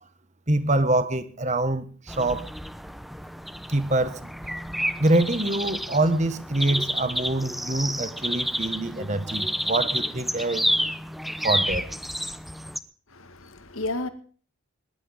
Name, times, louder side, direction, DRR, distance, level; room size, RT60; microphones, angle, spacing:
voice 1, 0.5-2.5 3.7-4.2 5.0-10.7 11.4-11.9, right 2 dB, 35° right, 1.4 m, -25 dB
sound 1, 2.1-12.8, equal, ahead, 0.7 m, -30 dB
voice 2, 13.1-14.1, left 2 dB, 80° left, 2.2 m, -32 dB
21.0 x 12.0 x 5.2 m
head